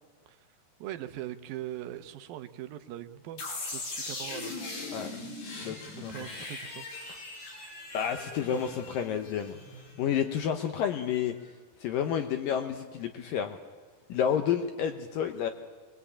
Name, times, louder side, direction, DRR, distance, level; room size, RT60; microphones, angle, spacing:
voice 1, 0.8-3.4 3.7-4.6 4.9-5.4 5.9-7.5, right 12 dB, 75° right, 9 dB, 2.5 m, -42 dB
sound 1, 3.4-10.2, left 3 dB, 90° left, 7.5 m, -40 dB
voice 2, 5.6-6.3 7.9-9.6 10.0-11.4 11.8-13.6 14.1-15.5, left 8 dB, 70° left, 6 dB, 2.4 m, -30 dB
24.0 x 21.0 x 8.6 m, 1.4 s
omnidirectional pair, 4.7 m